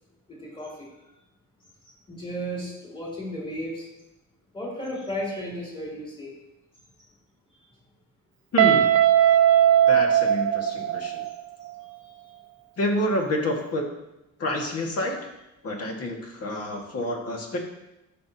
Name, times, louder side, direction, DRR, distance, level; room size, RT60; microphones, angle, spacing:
voice 1, 0.3-0.9 2.1-3.8 4.5-6.3, equal, 15° left, -5 dB, 3.1 m, -34 dB
voice 2, 8.5-8.9 9.9-11.2 12.8-13.8 14.4-15.2 15.6-17.6, left 1 dB, 50° left, 1 dB, 1.8 m, -28 dB
Guitar, 8.6-11.4, right 10 dB, 50° right, 0.4 m, -19 dB
12.5 x 5.9 x 2.8 m, 0.92 s
cardioid pair, 120°, 32 cm